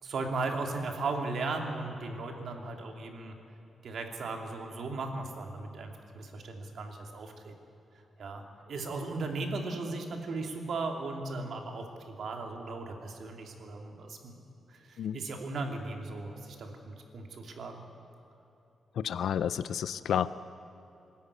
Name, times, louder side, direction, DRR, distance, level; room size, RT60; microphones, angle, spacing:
voice 1, 0.0-3.3 3.8-7.5 8.2-14.3 14.7-17.8, right 3 dB, 60° right, 3 dB, 2.6 m, -37 dB
voice 2, 19.0-20.3, left 9 dB, 80° left, 15 dB, 0.5 m, -30 dB
23.0 x 13.0 x 9.9 m, 2.9 s
wide cardioid pair, 155°, 0 cm